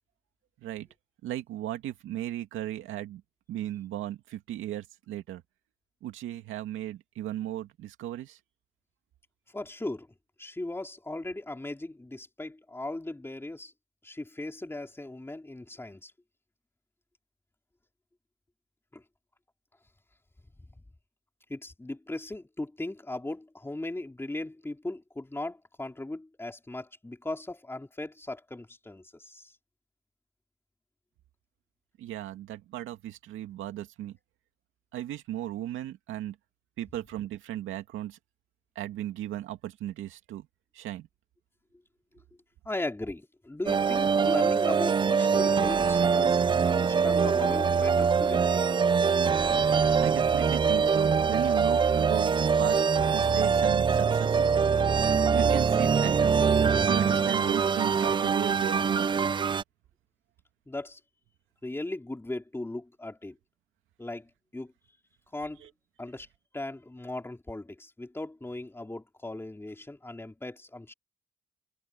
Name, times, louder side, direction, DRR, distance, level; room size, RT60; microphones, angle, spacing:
voice 1, 1.2-3.2 3.5-5.4 6.0-8.4 32.0-34.2 34.9-36.4 36.8-38.2 38.8-40.5 40.7-41.1 50.0-52.8 53.1-54.5 55.3-56.5 56.9-59.2 65.6-65.7, right 13 dB, 85° right, 2.3 m, -36 dB
voice 2, 9.5-10.1 10.4-13.7 14.0-16.1 18.9-19.0 21.5-29.6 42.7-48.5 60.7-61.0 61.6-63.4 64.0-64.7 65.3-65.6 66.0-66.3 66.5-70.9, left 2 dB, 10° left, 3.7 m, -38 dB
sound 1, 43.7-59.6, right 6 dB, 25° right, 0.3 m, -24 dB
cardioid pair, 90°, 20 cm